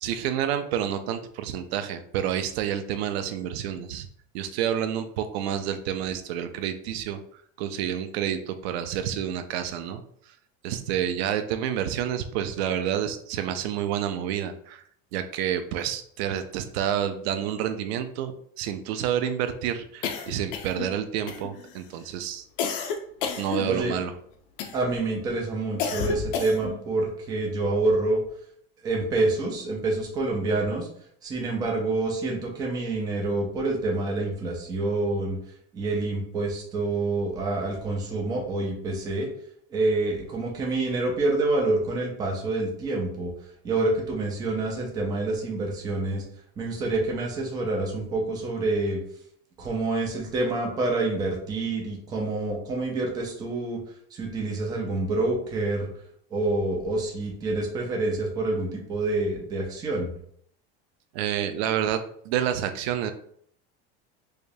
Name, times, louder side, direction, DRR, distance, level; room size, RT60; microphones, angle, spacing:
voice 1, 0.0-4.1 4.3-7.2 7.6-10.0 10.6-14.8 15.1-22.4 23.4-24.1 61.1-63.1, right 10 dB, 85° right, 9 dB, 0.5 m, -29 dB
sound 1, 20.0-20.9 21.3-21.8 22.6-24.1 24.6-25.0 25.8-26.8, left 6 dB, 60° left, 0.6 m, -31 dB
voice 2, 24.7-28.2 28.8-30.9 31.2-35.4 35.7-39.3 39.7-43.3 43.6-46.2 46.6-49.0 49.6-53.8 54.1-55.9 56.3-60.1, right 2 dB, 15° right, 0 dB, 0.4 m, -27 dB
4.9 x 2.2 x 2.6 m, 0.64 s
cardioid pair, 180°, 31 cm